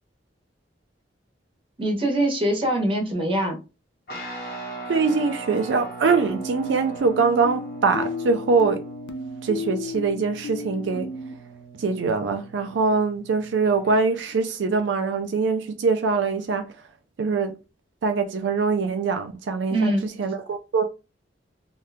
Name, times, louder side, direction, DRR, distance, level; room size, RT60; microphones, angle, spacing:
voice 1, 1.8-3.6 19.7-20.1, right 1 dB, 30° right, 0.9 m, -23 dB
Guitar, 4.1-13.9, right 3 dB, 60° left, 1.1 m, -40 dB
voice 2, 4.9-8.8 9.4-11.1 11.8-16.7 17.2-17.5 18.0-20.9, right 4 dB, 85° right, 0.4 m, -23 dB
sound 1, 6.3-11.3, left 3 dB, 90° left, 0.4 m, -34 dB
2.7 x 2.2 x 3.4 m
head